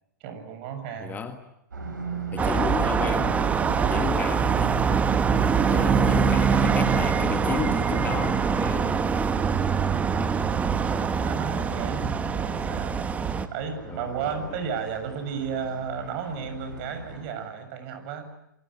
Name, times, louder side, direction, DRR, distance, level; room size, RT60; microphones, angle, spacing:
voice 1, 0.2-1.2 2.3-2.7 3.1-4.7 10.8-18.3, right 7 dB, 40° right, 8 dB, 7.6 m, -34 dB
voice 2, 1.0-1.4 2.3-3.6 3.9-4.8 5.7-9.0 13.9-14.5, left 7 dB, 15° left, 8 dB, 1.8 m, -33 dB
sound 1, 1.7-17.2, right 4 dB, 70° right, 7.2 m, -39 dB
sound 2, 2.4-13.5, right 6 dB, 15° right, 1.5 m, -24 dB
28.5 x 24.5 x 7.9 m, 0.81 s
figure-of-eight pair, 105°, 10 cm